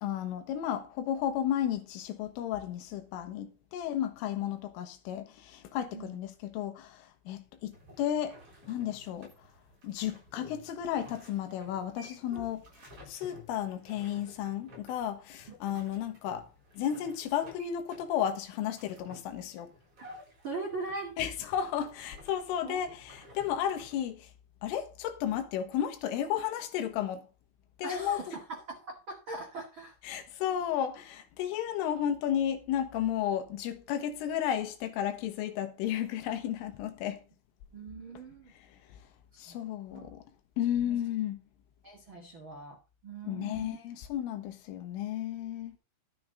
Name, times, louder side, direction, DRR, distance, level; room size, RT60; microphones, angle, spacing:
voice 1, 0.0-9.3 9.8-12.7 13.1-16.5 16.8-19.7 21.2-24.3 24.6-27.3 27.8-28.4 30.0-37.2 39.4-40.2 40.6-41.4 43.2-45.8, left 10 dB, 80° left, 3.7 m, -33 dB
sound 1, 7.7-24.0, left 1 dB, 30° right, 7.0 m, -54 dB
voice 2, 20.4-21.2 22.6-22.8 27.8-30.2 37.7-38.5 39.3-39.6 39.9-40.1 40.8-41.0 41.8-42.8 43.0-43.8, right 3 dB, 80° right, 1.1 m, -41 dB
12.0 x 9.6 x 3.9 m
omnidirectional pair, 5.8 m